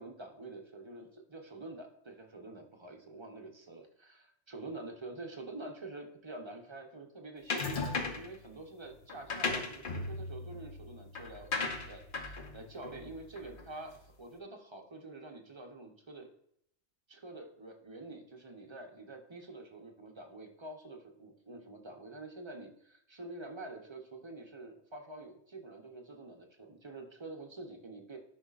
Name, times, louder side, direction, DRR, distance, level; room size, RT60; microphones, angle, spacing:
voice 1, 0.0-16.3 17.1-28.2, right 2 dB, 25° right, 2 dB, 0.8 m, -47 dB
sound 1, 7.5-8.3 9.1-13.8, left 3 dB, 50° left, 1.0 m, -37 dB
10.5 x 5.4 x 2.4 m, 0.70 s
omnidirectional pair, 1.2 m